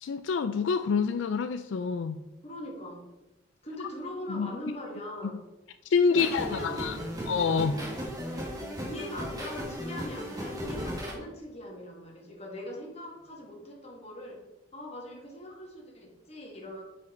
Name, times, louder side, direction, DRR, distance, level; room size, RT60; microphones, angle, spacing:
voice 1, 0.0-2.2 4.3-4.5 5.9-7.0 7.3-7.7, left 5 dB, 80° left, 10 dB, 0.4 m, -27 dB
voice 2, 2.4-3.1 3.6-5.4 6.1-7.0 7.7-8.1 8.8-14.4 14.7-16.8, left 1 dB, 35° left, -1 dB, 2.0 m, -41 dB
sound 1, 6.1-11.1, equal, 20° right, 1.7 m, -36 dB
10.0 x 5.4 x 3.9 m, 0.99 s
head